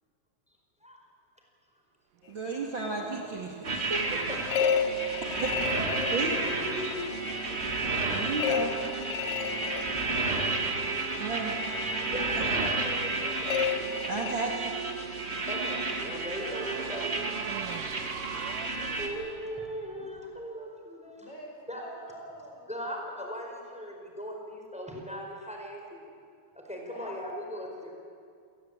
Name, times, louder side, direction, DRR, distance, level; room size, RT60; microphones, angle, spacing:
voice 1, 2.3-4.2 5.4-5.5 6.1-6.3 8.1-8.7 11.2-11.6 12.4-12.7 14.1-14.7, right 3 dB, 40° right, 0 dB, 2.6 m, -33 dB
Race car auto racing / Accelerating revving vroom, 2.3-20.4, right 10 dB, 85° right, 2.5 m, -42 dB
voice 2, 2.8-3.2 4.3-4.9 5.8-7.4 9.1-10.4 12.1-13.7 15.5-17.3 19.0-21.3 21.7-21.8 22.7-26.0 26.7-27.9, equal, ahead, 1 dB, 4.5 m, -39 dB
sound 1, 3.6-19.1, right 2 dB, 25° right, 2.1 m, -32 dB
sound 2, 4.5-6.8 8.4-10.5 13.5-14.3, left 7 dB, 75° left, 1.3 m, -31 dB
voice 3, 16.3-18.5 21.2-22.7 26.9-27.1, right 1 dB, 45° left, 0 dB, 5.4 m, -46 dB
27.5 x 19.0 x 8.9 m, 2.3 s
omnidirectional pair, 3.7 m